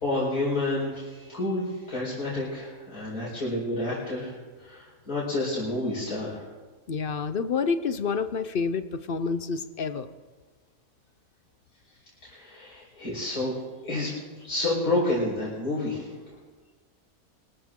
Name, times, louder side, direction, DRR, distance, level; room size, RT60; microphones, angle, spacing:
voice 1, 0.0-4.3 4.6-6.4 12.2-13.5 13.8-16.4, left 2 dB, 90° left, -8 dB, 5.2 m, -29 dB
voice 2, 6.9-10.1, left 5 dB, 50° left, 12 dB, 0.7 m, -28 dB
24.5 x 14.0 x 3.8 m, 1.4 s
omnidirectional pair, 1.5 m